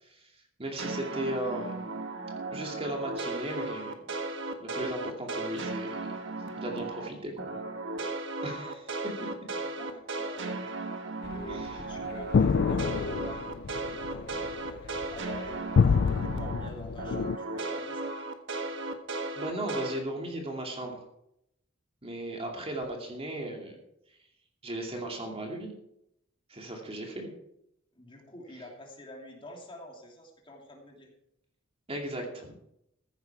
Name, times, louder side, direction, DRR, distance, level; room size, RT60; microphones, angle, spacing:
voice 1, 0.0-0.3 0.6-1.7 2.5-4.1 4.6-6.1 6.6-7.6 8.4-8.9 11.5-11.7 19.4-21.0 22.0-23.8 24.6-25.7 26.5-27.3 31.9-32.5, right 1 dB, 30° right, 1 dB, 2.5 m, -36 dB
sound 1, 0.8-7.1 7.4-16.7 17.0-20.0, right 2 dB, 65° right, 1.5 m, -36 dB
voice 2, 9.7-10.7 11.3-18.2 27.9-31.1, equal, 25° left, 0 dB, 2.8 m, -47 dB
sound 2, 11.2-17.4, left 5 dB, 55° left, 0.4 m, -27 dB
15.0 x 10.5 x 4.7 m, 0.79 s
head